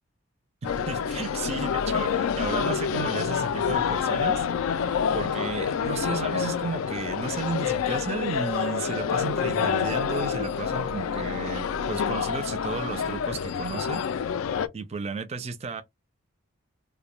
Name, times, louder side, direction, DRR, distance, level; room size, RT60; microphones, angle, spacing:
sound 1, 0.6-14.7, left 7 dB, 80° left, 0.3 m, -27 dB
voice 1, 0.6-14.0 14.7-15.8, right 4 dB, 30° right, 0.4 m, -34 dB
Wind instrument woodwind instrument, 6.8-9.2 9.5-14.0, left 4 dB, 15° left, 0.6 m, -42 dB
2.3 x 2.1 x 3.0 m
head